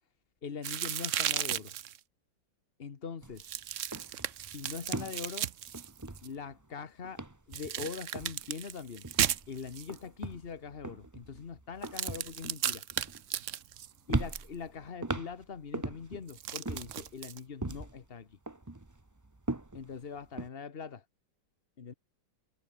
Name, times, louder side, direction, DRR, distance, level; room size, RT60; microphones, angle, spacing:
voice 1, 0.4-1.7 2.8-3.5 4.5-5.5 6.2-9.0 9.5-12.8 14.1-18.4 19.7-21.0 21.8-21.9, left 6 dB, 35° left, 1.1 m, -42 dB
sound 1, 0.6-2.0 3.4-6.3 7.5-10.0 11.8-14.5 16.3-17.4, right 11 dB, 80° right, 0.6 m, -35 dB
sound 2, 3.2-3.4 3.7-6.7 7.0-7.9 8.1-8.5 9.0-13.7 14.1-16.2 16.6-18.1 18.5-20.5, right 2 dB, 15° right, 0.7 m, -39 dB
omnidirectional pair, 2.3 m